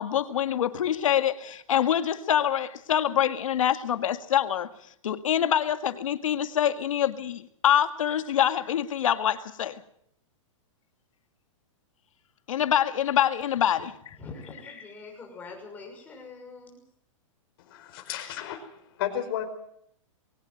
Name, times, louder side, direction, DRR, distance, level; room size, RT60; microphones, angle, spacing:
voice 1, 0.0-4.7 5.0-9.8 12.5-14.2, left 10 dB, 75° left, 9 dB, 2.0 m, -25 dB
voice 2, 14.2-16.8, left 4 dB, 10° left, 0 dB, 6.3 m, -43 dB
voice 3, 17.6-19.4, left 10 dB, 45° left, 5 dB, 5.0 m, -33 dB
22.0 x 17.5 x 7.9 m, 0.70 s
hypercardioid pair, 165°, 17 cm